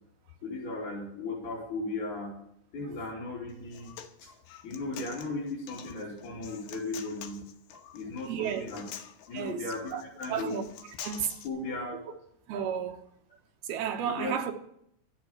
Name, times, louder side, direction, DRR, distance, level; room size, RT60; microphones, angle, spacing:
voice 1, 0.4-2.3 2.7-3.9 4.2-4.3 4.6-7.4 7.9-8.8 9.3-10.6 11.4-12.0 14.0-14.4, left 2 dB, 50° left, 4.5 m, -36 dB
Human voice, 3.5-11.5, left 9 dB, 80° left, 3.1 m, -47 dB
voice 2, 8.3-8.6 9.3-9.6 9.9-10.0 10.3-10.6 11.0-11.4 12.5-13.0 13.6-14.5, right 8 dB, 70° right, 2.7 m, -32 dB
12.5 x 8.3 x 9.7 m
omnidirectional pair, 4.9 m